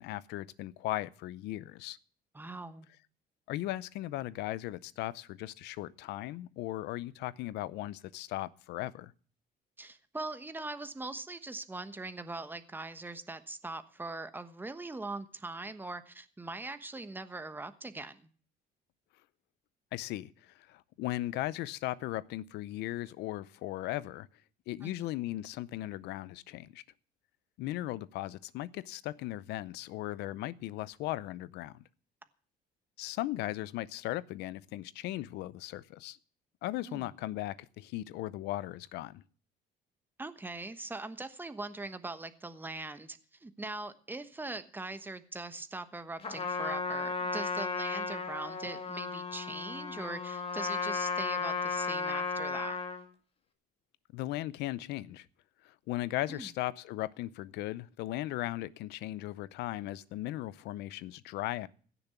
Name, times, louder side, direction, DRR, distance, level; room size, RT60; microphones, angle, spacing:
voice 1, 0.0-2.0 3.5-9.1 19.9-24.3 24.7-26.8 27.6-31.8 33.0-36.2 36.6-39.2 54.1-55.3 55.6-61.7, left 16 dB, 85° left, 0.6 m, -37 dB
voice 2, 2.3-2.9 9.8-18.3 24.8-25.1 36.9-37.1 40.2-52.8 56.3-56.5, right 2 dB, 10° right, 1.2 m, -41 dB
Trumpet, 46.2-53.0, left 4 dB, 35° left, 2.2 m, -34 dB
16.0 x 7.0 x 8.2 m
cardioid pair, 110°, 17 cm